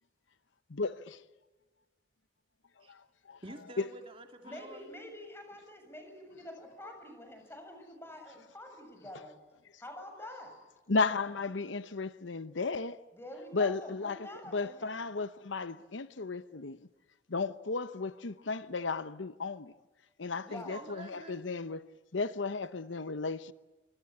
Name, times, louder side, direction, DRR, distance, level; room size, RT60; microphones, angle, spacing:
voice 1, 0.7-1.2 3.3-3.4 10.9-13.0 13.5-14.2 14.5-16.8 17.3-19.7 20.2-21.8 22.1-23.5, left 4 dB, 85° left, 0.9 m, -34 dB
voice 2, 3.4-4.9 20.4-21.5, right 2 dB, 30° right, 2.5 m, -48 dB
voice 3, 4.4-9.4 9.8-10.5 13.1-15.1 20.4-20.8, left 1 dB, 15° left, 7.2 m, -47 dB
26.5 x 25.5 x 8.5 m
head